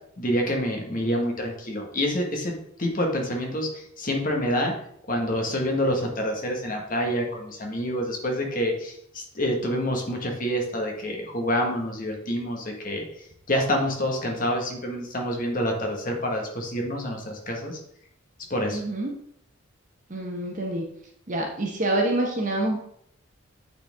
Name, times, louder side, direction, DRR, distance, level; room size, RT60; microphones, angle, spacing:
voice 1, 0.2-2.5 2.8-4.7 5.1-13.0 13.5-17.8 18.5-18.8, equal, 40° left, 1 dB, 1.5 m, -27 dB
voice 2, 18.7-19.1 20.1-20.9 21.3-22.8, right 1 dB, 35° right, 1 dB, 1.0 m, -26 dB
9.1 x 4.4 x 3.5 m, 0.68 s
head